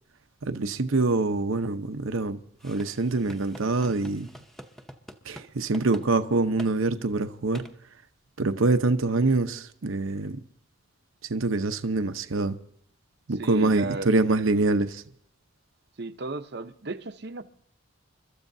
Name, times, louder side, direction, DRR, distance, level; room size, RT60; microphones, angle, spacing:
voice 1, 0.4-4.3 5.3-7.6 8.4-10.4 11.3-12.6 13.3-15.0, right 3 dB, 85° right, 0.8 m, -25 dB
sound 1, 2.6-5.5 5.7-6.1 6.6-6.7 7.5-7.7, equal, ahead, 0.8 m, -45 dB
voice 2, 13.4-14.1 16.0-17.4, right 3 dB, 55° right, 0.7 m, -35 dB
29.5 x 13.5 x 2.7 m
head